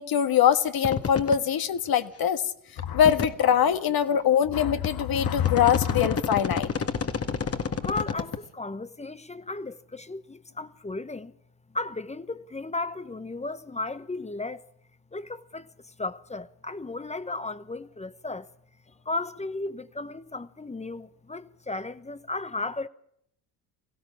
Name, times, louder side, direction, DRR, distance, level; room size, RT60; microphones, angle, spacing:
voice 1, 0.0-2.4 2.8-6.7, left 9 dB, 50° left, 1.6 m, -23 dB
sound 1, 0.8-1.4 1.9-2.0 2.8-3.5 4.2-4.3 4.8-8.4, left 6 dB, 30° left, 1.7 m, -29 dB
voice 2, 7.8-11.3 11.7-14.6 15.1-18.5 19.0-22.9, left 2 dB, 15° left, 1.0 m, -35 dB
23.0 x 16.5 x 7.3 m
hypercardioid pair, 65°, 46 cm